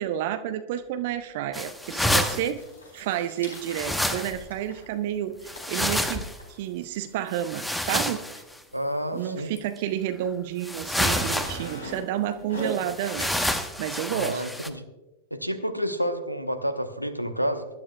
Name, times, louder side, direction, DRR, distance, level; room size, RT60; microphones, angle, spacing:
voice 1, 0.0-2.6 2.9-8.4 9.1-14.4, right 11 dB, 50° right, 10 dB, 0.6 m, -30 dB
sound 1, 0.7-0.8 1.9-7.2 7.7-7.8 7.9-8.4 9.2-9.3 10.2-10.3 10.6-13.3, right 1 dB, 80° left, 4.3 m, -40 dB
sound 2, 1.5-2.5 3.5-4.5 5.5-6.4 7.3-8.4 9.6-9.7 10.6-11.7 12.7-14.7, left 1 dB, 5° left, 1.0 m, -28 dB
voice 2, 8.7-9.5 14.1-14.8 15.3-17.7, equal, 90° right, 7 dB, 1.0 m, -29 dB
23.0 x 12.0 x 2.3 m, 1.0 s
figure-of-eight pair, 90°, 0 cm